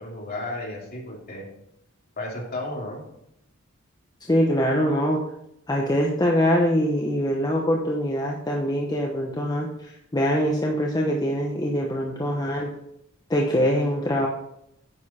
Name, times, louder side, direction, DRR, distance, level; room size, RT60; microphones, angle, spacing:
voice 1, 0.0-1.5 2.2-3.0, left 2 dB, 45° left, -2 dB, 2.8 m, -33 dB
voice 2, 4.2-5.2 5.7-12.7 13.3-14.3, equal, 20° left, -1 dB, 0.9 m, -23 dB
9.8 x 6.8 x 4.2 m, 0.79 s
head